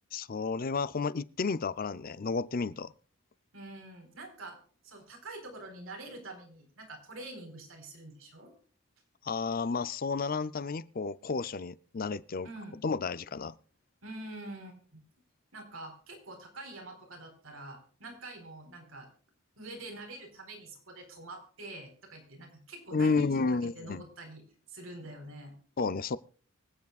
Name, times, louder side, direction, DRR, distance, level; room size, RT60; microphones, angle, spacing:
voice 1, 0.1-2.9 9.2-12.5 12.8-13.5 22.9-24.0 25.8-26.2, left 4 dB, 45° left, 0.5 m, -31 dB
voice 2, 3.5-4.6 4.8-8.5 12.4-12.8 14.0-15.0 15.5-19.1 19.6-25.5, right 2 dB, 80° right, 4.2 m, -46 dB
24.5 x 8.3 x 2.4 m
head